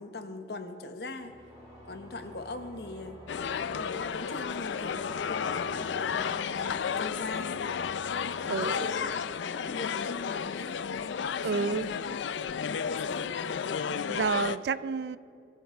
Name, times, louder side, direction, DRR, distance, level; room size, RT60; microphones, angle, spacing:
voice 1, 0.0-1.4 1.9-3.2 3.6-7.6 8.4-9.2 9.6-10.9 11.5-12.1 12.5-13.2, left 2 dB, 65° left, 0.9 m, -41 dB
sound 1, 1.2-10.0, equal, 35° right, 3.8 m, -53 dB
sound 2, 1.5-9.9, equal, 5° right, 3.7 m, -53 dB
sound 3, 3.3-14.6, left 7 dB, 85° left, 0.4 m, -32 dB
voice 2, 8.5-8.9 11.4-11.9 14.1-15.2, right 5 dB, 70° right, 0.4 m, -30 dB
23.0 x 14.5 x 3.5 m
head